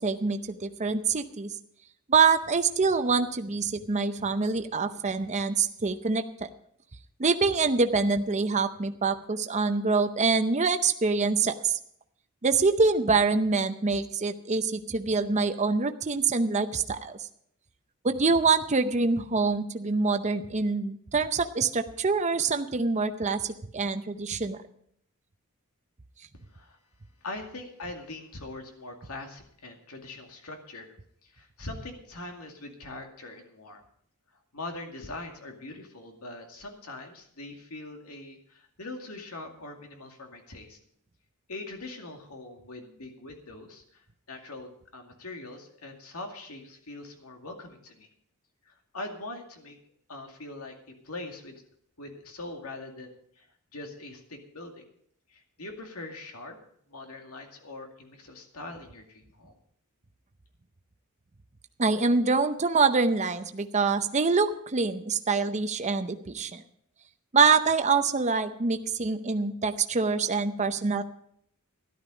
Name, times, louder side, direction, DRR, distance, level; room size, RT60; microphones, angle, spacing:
voice 1, 0.0-1.5 2.1-6.2 7.2-11.8 12.4-17.3 18.0-24.6 61.8-66.6 67.3-71.0, right 4 dB, 35° right, 8 dB, 0.7 m, -25 dB
voice 2, 27.2-30.9 31.2-33.8 34.5-40.8 41.5-48.1 48.7-49.8 50.1-50.8 51.0-51.6 52.0-53.5 53.7-54.8 55.3-56.6 56.9-59.6, left 2 dB, 90° left, 3 dB, 2.3 m, -42 dB
13.0 x 12.0 x 5.0 m, 0.68 s
head